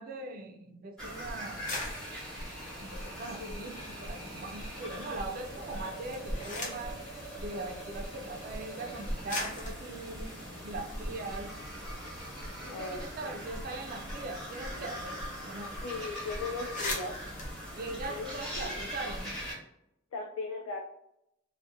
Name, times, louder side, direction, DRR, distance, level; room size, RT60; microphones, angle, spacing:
voice 1, 0.0-1.7 2.8-7.0 7.4-10.4 10.6-11.5 12.6-15.8 17.7-19.4, right 2 dB, 45° right, 5 dB, 0.3 m, -41 dB
sound 1, 1.0-19.5, equal, 5° left, 1.0 m, -41 dB
sound 2, 1.6-4.1 4.4-5.1 5.9-7.0 8.0-8.1 8.9-9.0 9.3-11.6 12.0-12.1 12.3-14.9 15.2-15.3 15.6-15.8 16.2-16.3 16.5-18.8, left 2 dB, 40° left, 0.6 m, -42 dB
voice 2, 12.7-13.3 15.8-17.1 18.1-18.2 18.5-18.8 20.1-20.8, left 3 dB, 85° left, 2 dB, 0.3 m, -38 dB
2.4 x 2.1 x 2.6 m, 0.81 s
head